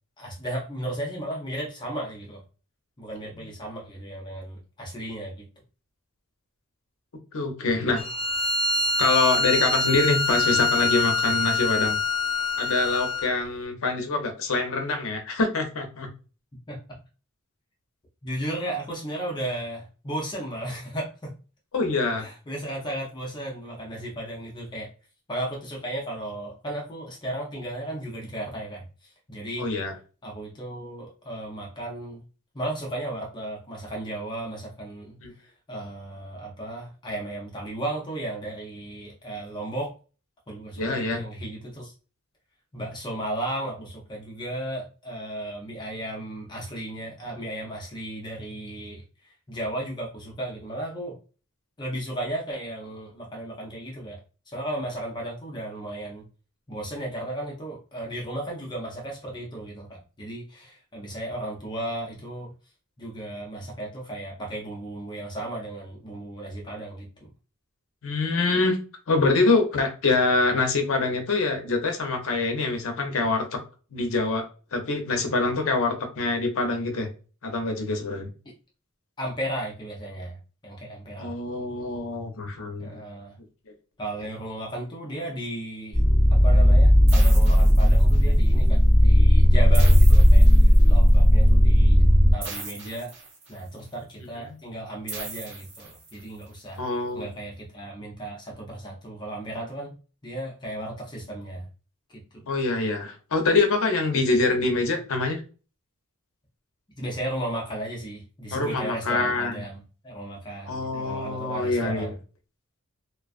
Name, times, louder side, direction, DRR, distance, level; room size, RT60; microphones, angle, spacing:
voice 1, 0.2-2.4 3.0-5.4 16.7-17.0 18.2-21.3 22.2-24.9 25.3-29.7 30.2-32.2 32.5-39.9 40.5-41.9 42.7-51.2 51.8-54.2 54.5-56.2 56.7-62.5 63.0-67.3 79.2-80.4 80.6-81.3 82.8-83.4 84.0-86.0 86.3-92.0 92.3-93.1 93.5-96.8 97.1-99.9 100.2-101.7 102.3-102.5 107.0-112.2, right 1 dB, 20° left, -1 dB, 0.5 m, -35 dB
voice 2, 7.3-8.0 9.0-12.0 12.6-16.1 21.7-22.3 29.6-29.9 35.2-35.3 40.8-41.2 68.0-68.8 69.1-73.6 73.9-74.4 74.7-77.1 77.4-78.3 81.2-83.0 96.8-97.3 102.5-105.4 108.5-109.6 110.7-112.1, left 3 dB, 65° left, 4 dB, 0.6 m, -25 dB
Bowed string instrument, 8.0-13.3, left 3 dB, 35° right, 0.6 m, -25 dB
sound 1, 85.9-92.3, equal, 20° right, 1.0 m, -15 dB
sound 2, 87.1-88.4 89.7-91.1 92.4-93.8 95.1-96.4, right 3 dB, 55° right, 0.8 m, -39 dB
2.4 x 2.3 x 2.4 m, 0.35 s
head